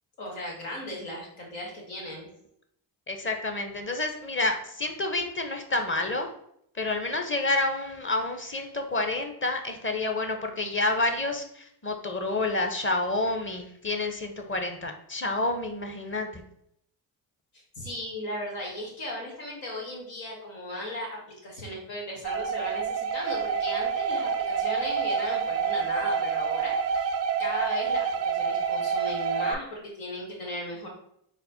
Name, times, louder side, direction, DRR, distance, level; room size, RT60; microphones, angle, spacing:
voice 1, 0.2-2.3 17.5-27.1 27.4-30.9, left 1 dB, 90° left, -2 dB, 1.5 m, -37 dB
voice 2, 3.1-6.3 6.8-16.4, left 2 dB, 25° left, 6 dB, 0.7 m, -29 dB
sound 1, 22.2-29.5, right 6 dB, 35° right, 0.4 m, -28 dB
4.1 x 2.1 x 4.1 m, 0.72 s
supercardioid pair, 60°, 49 cm